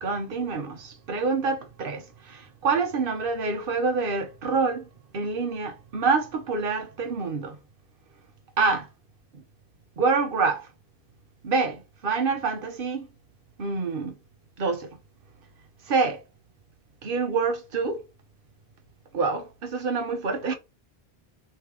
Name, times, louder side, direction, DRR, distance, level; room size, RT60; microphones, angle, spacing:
voice 1, 0.0-4.9 5.1-7.6 8.6-8.8 10.0-10.7 11.4-13.1 13.6-14.1 14.6-14.9 15.9-16.2 17.0-18.0 19.1-20.5, right 4 dB, 60° right, 1.0 m, -26 dB
3.3 x 3.2 x 3.3 m
omnidirectional pair, 1.1 m